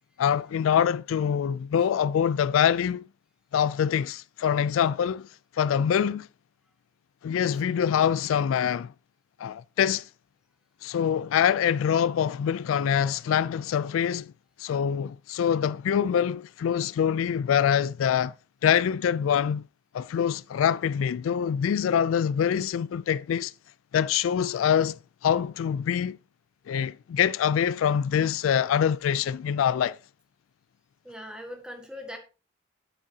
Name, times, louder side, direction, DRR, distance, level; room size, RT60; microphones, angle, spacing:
voice 1, 0.2-3.1 3.5-5.3 5.6-6.3 7.2-8.9 9.4-10.0 10.8-14.3 14.6-18.3 18.6-19.6 19.9-23.5 23.9-26.2 26.7-30.0, left 8 dB, 85° left, 0.3 m, -25 dB
voice 2, 31.0-32.2, left 1 dB, 5° right, 1.5 m, -40 dB
9.1 x 8.4 x 2.8 m
head